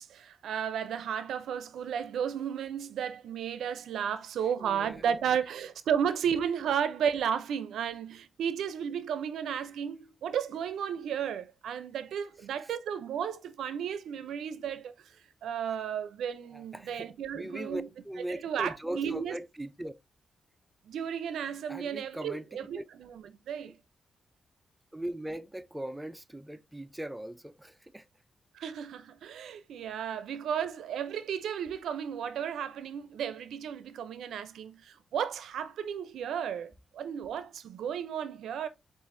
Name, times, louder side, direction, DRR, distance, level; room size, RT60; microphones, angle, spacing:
voice 1, 0.0-14.9 15.4-17.9 18.3-19.3 20.9-23.8 28.5-38.7, right 8 dB, 85° right, 0.4 m, -33 dB
voice 2, 4.6-5.2 12.6-12.7 16.5-19.9 21.7-22.9 23.7-23.8 24.9-28.1, right 1 dB, 10° right, 0.4 m, -40 dB
6.8 x 2.4 x 2.5 m
cardioid pair, 80°, 0 cm